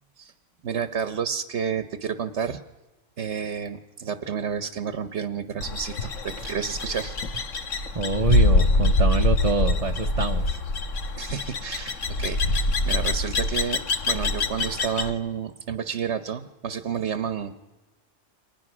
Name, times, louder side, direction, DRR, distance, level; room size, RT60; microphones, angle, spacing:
voice 1, 0.6-2.6 3.2-7.2 7.9-8.0 11.2-17.5, right 7 dB, 65° right, 11 dB, 1.3 m, -30 dB
sound 1, 5.6-15.1, left 2 dB, 85° left, 1.8 m, -24 dB
voice 2, 7.9-10.6, right 3 dB, 35° right, 2 dB, 0.9 m, -26 dB
29.0 x 25.0 x 6.1 m, 1.1 s
omnidirectional pair, 1.3 m